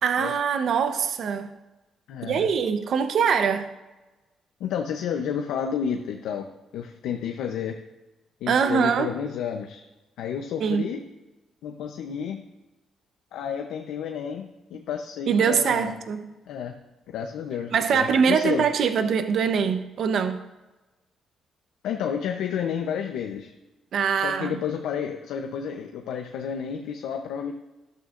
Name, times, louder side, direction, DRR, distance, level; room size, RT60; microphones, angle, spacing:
voice 1, 0.0-1.5 2.2-3.7 8.5-9.1 10.6-10.9 15.3-16.3 17.7-20.4 23.9-24.6, right 6 dB, 65° right, 0.9 m, -23 dB
voice 2, 2.1-2.5 4.6-6.5 6.7-7.8 8.4-9.8 10.2-11.0 11.6-12.4 13.3-15.9 16.5-16.7 17.1-18.7 21.8-23.5 24.2-27.5, left 8 dB, 85° left, 0.7 m, -31 dB
12.5 x 12.5 x 2.6 m
cardioid pair, 90°, 0 cm